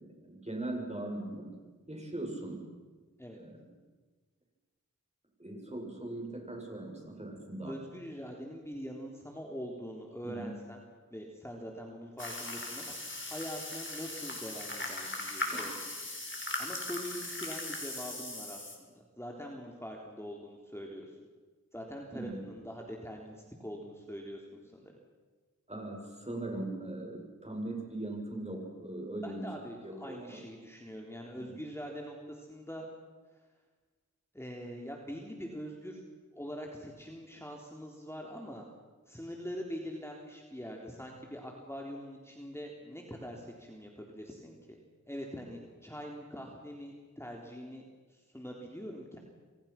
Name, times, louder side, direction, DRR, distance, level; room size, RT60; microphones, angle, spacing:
voice 1, 0.0-1.6 1.9-2.7 3.4-3.6 5.4-7.8 10.2-10.5 15.5-15.6 22.1-22.4 25.7-29.5 29.8-30.4 31.5-31.6, right 2 dB, 20° right, 1 dB, 7.5 m, -40 dB
voice 2, 7.6-10.8 11.1-13.0 13.3-16.0 16.6-21.2 21.7-24.9 29.2-32.9 34.3-36.0 36.3-38.6 39.1-44.8 45.1-47.8 48.1-49.2, equal, 10° left, 0 dB, 3.7 m, -43 dB
sound 1, 12.2-18.8, left 2 dB, 40° left, 5.3 m, -39 dB
28.5 x 24.0 x 6.0 m, 1.3 s
wide cardioid pair, 50°, 31 cm